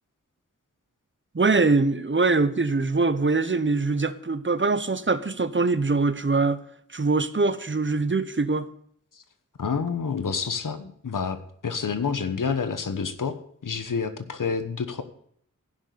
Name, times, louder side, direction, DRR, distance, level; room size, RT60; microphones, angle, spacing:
voice 1, 1.3-6.6 6.9-8.7, right 3 dB, 40° right, 1.0 m, -23 dB
voice 2, 9.6-11.4 11.6-15.0, left 5 dB, 85° left, 1.2 m, -28 dB
15.5 x 6.1 x 6.9 m
wide cardioid pair, 50°, 31 cm